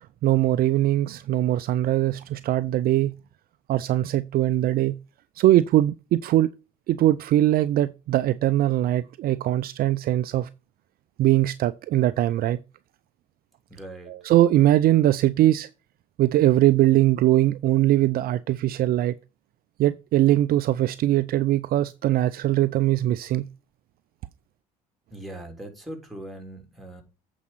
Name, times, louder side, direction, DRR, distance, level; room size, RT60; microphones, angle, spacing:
voice 1, 0.2-3.1 3.7-5.0 5.4-6.5 6.9-10.5 11.2-12.6 14.1-15.7 16.2-19.2 19.8-23.5, right 14 dB, 50° right, 0.5 m, -21 dB
voice 2, 13.7-14.2 25.1-27.0, right 1 dB, ahead, 3.5 m, -40 dB
8.3 x 4.9 x 5.7 m
hypercardioid pair, 60°, 19 cm